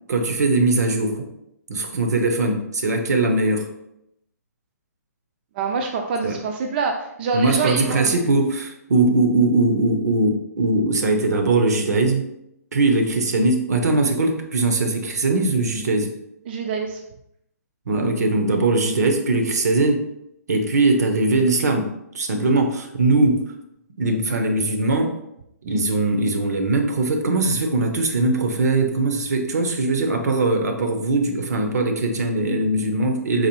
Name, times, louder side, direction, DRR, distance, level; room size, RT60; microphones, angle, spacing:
voice 1, 0.1-1.3 1.7-3.7 6.2-6.4 7.3-12.3 12.7-16.1 17.9-20.0 20.5-23.4 24.0-25.1 25.7-33.5, right 2 dB, 70° right, 5 dB, 0.7 m, -20 dB
voice 2, 5.6-8.2 16.5-17.0, right 4 dB, 35° right, 3 dB, 0.3 m, -25 dB
4.0 x 2.6 x 2.9 m, 0.80 s
hypercardioid pair, 150°, 9 cm